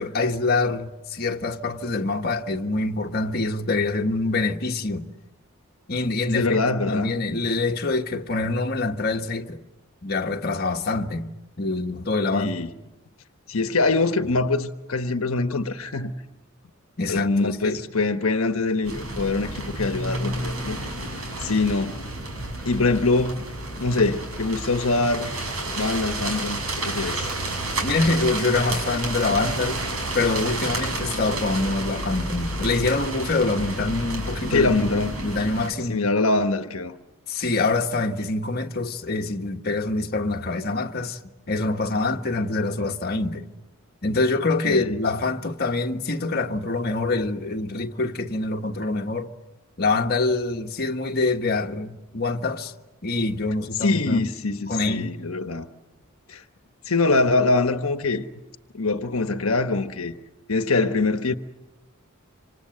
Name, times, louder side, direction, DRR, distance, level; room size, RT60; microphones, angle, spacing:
voice 1, 0.0-5.1 5.9-6.6 6.9-9.6 10.0-11.3 11.6-12.5 17.0-17.8 27.8-29.8 30.1-36.0 37.3-41.2 41.5-43.4 44.0-49.3 49.8-52.7 53.0-54.3 54.7-55.1, left 3 dB, 50° left, 1.5 m, -25 dB
voice 2, 6.3-7.1 12.3-12.7 13.5-16.1 17.1-20.8 21.4-22.1 22.6-23.4 23.8-25.4 25.7-27.3 34.5-35.2 35.9-36.9 44.6-45.0 53.8-55.7 56.3-56.4 56.9-58.2 58.7-60.1 60.5-61.3, left 3 dB, 80° left, 1.2 m, -23 dB
sound 1, 18.8-35.7, right 1 dB, 85° right, 6.7 m, -30 dB
27.5 x 26.0 x 7.9 m
head